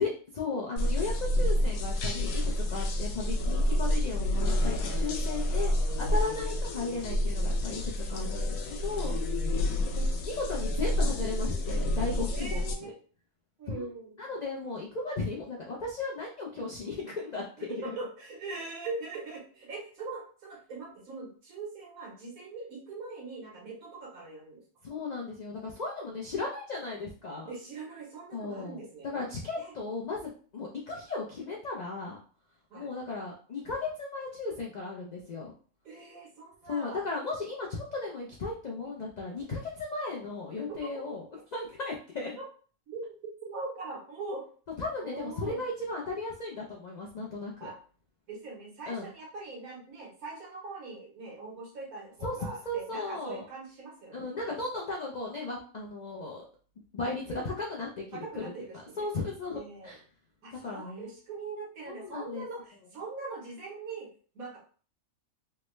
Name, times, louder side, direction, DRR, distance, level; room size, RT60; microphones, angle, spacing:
voice 1, 0.0-2.4 2.7-5.7 6.0-7.8 8.1-9.5 9.9-12.9 13.7-13.9 14.2-17.7 24.8-27.5 28.3-32.2 32.7-35.5 36.7-42.4 44.8-47.7 48.9-49.1 52.2-53.5 54.1-56.4 56.9-58.4 59.0-60.0 60.5-61.1 61.9-62.5, left 3 dB, 60° left, -2 dB, 0.4 m, -36 dB
sound 1, 0.8-12.8, left 1 dB, 85° left, 1.0 m, -29 dB
voice 2, 12.3-12.9 13.6-14.2 17.6-24.6 27.5-29.1 29.6-29.7 32.7-32.9 35.8-37.0 42.4-42.5 42.9-43.0 43.4-44.5 45.0-45.6 47.6-47.7 48.3-54.5 57.2-57.4 58.1-59.1 59.5-60.0 60.4-64.6, right 3 dB, 80° right, -2 dB, 1.5 m, -42 dB
3.4 x 2.1 x 3.0 m, 0.41 s
omnidirectional pair, 1.5 m